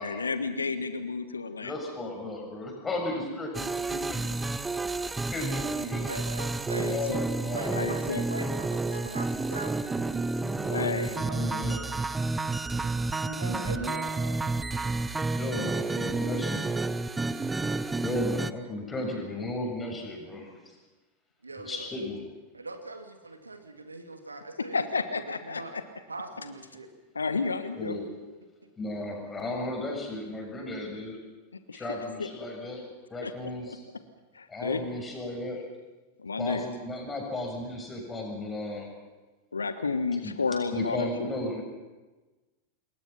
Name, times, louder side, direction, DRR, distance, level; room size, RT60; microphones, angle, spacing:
voice 1, 0.0-1.7 6.7-7.2 7.7-8.2 10.7-11.1 24.7-25.8 27.1-28.0 31.7-31.8 32.2-32.3 33.2-33.8 34.3-34.8 36.2-36.7 39.5-41.3, left 4 dB, 75° left, 11 dB, 1.2 m, -31 dB
voice 2, 0.7-1.1 2.4-2.5 6.1-7.0 7.5-10.3 10.6-11.4 13.2-14.4 17.1-17.4 21.4-21.9 22.5-24.9 25.4-25.7 26.1-26.9 27.3-27.4 30.6-30.8, right 2 dB, 80° right, 6 dB, 2.2 m, -41 dB
voice 3, 1.6-4.2 5.2-6.1 6.9-7.7 10.5-11.8 13.4-13.9 15.3-16.8 18.0-20.5 21.6-22.2 27.8-28.1 28.8-31.2 31.7-32.8 33.1-33.8 34.5-35.6 36.4-38.9 40.2-40.3 40.7-41.6, left 1 dB, 15° left, 2 dB, 7.1 m, -35 dB
sound 1, 3.5-18.5, right 3 dB, 10° right, 0.7 m, -30 dB
27.0 x 21.5 x 5.9 m, 1.2 s
figure-of-eight pair, 90°, 0 cm